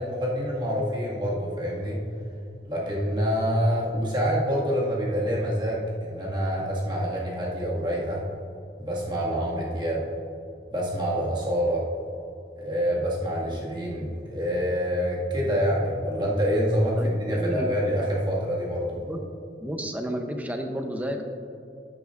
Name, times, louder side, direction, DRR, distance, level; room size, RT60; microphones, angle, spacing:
voice 1, 0.0-2.0 2.7-8.2 8.8-10.0 10.7-11.9 12.6-19.0, equal, 25° right, -5 dB, 1.9 m, -26 dB
voice 2, 17.0-17.7 19.0-19.2 19.6-21.2, equal, 10° right, 4 dB, 0.7 m, -31 dB
11.0 x 9.4 x 2.5 m, 2.6 s
head